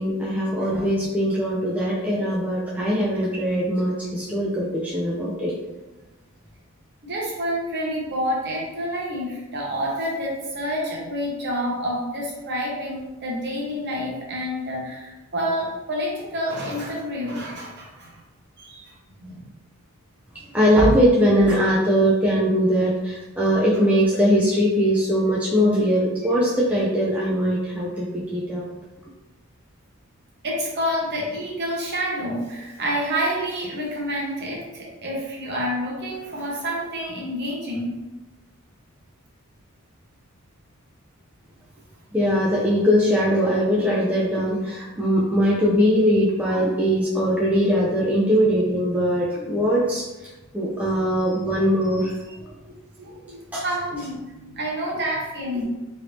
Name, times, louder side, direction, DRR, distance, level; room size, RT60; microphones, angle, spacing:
voice 1, 0.0-5.5 20.5-28.1 28.3-28.7 42.1-50.0 50.5-52.1 52.6-52.7 53.5-53.6, equal, 5° right, -6 dB, 0.4 m, -21 dB
voice 2, 7.0-18.1 18.6-18.9 19.2-19.5 30.4-37.9 53.0-55.6, equal, 50° right, -3 dB, 0.9 m, -28 dB
3.1 x 2.6 x 3.1 m, 1.1 s
head